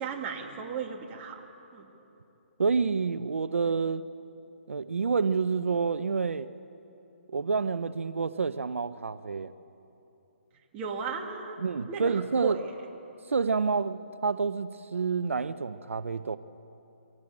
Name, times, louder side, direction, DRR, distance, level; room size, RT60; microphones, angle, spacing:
voice 1, 0.0-1.4 1.7-1.9 10.7-11.6 11.9-12.8, right 6 dB, 20° right, 0 dB, 2.4 m, -35 dB
voice 2, 2.6-4.0 4.7-6.5 7.3-9.5 11.6-12.6 13.3-16.4, right 5 dB, 85° right, 13 dB, 0.7 m, -28 dB
23.5 x 17.0 x 8.6 m, 2.9 s
hypercardioid pair, 155°, 7 cm